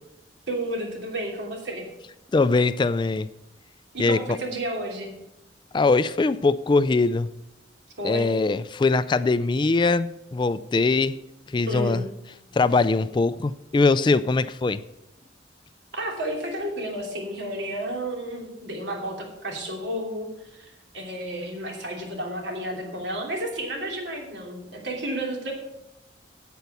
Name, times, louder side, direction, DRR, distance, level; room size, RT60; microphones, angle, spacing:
voice 1, 0.5-1.9 3.9-5.1 8.0-8.3 11.7-12.1 15.9-20.3 20.6-25.5, right 1 dB, 70° right, 1 dB, 2.9 m, -31 dB
voice 2, 2.3-3.3 4.0-4.2 5.7-7.3 8.0-11.2 11.5-12.0 12.5-14.8, left 3 dB, 25° left, 15 dB, 0.3 m, -22 dB
8.9 x 8.1 x 6.9 m, 0.90 s
head